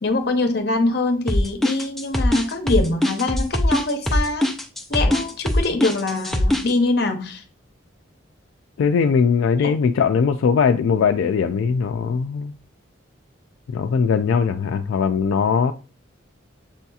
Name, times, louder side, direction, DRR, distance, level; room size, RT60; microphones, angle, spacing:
voice 1, 0.0-4.5 4.9-7.4 9.6-9.7, left 2 dB, 55° left, 0.7 m, -23 dB
sound 1, 1.3-6.7, left 1 dB, ahead, 0.3 m, -21 dB
voice 2, 8.8-12.5 13.7-15.7, left 6 dB, 80° left, 0.3 m, -20 dB
6.9 x 2.8 x 2.3 m
head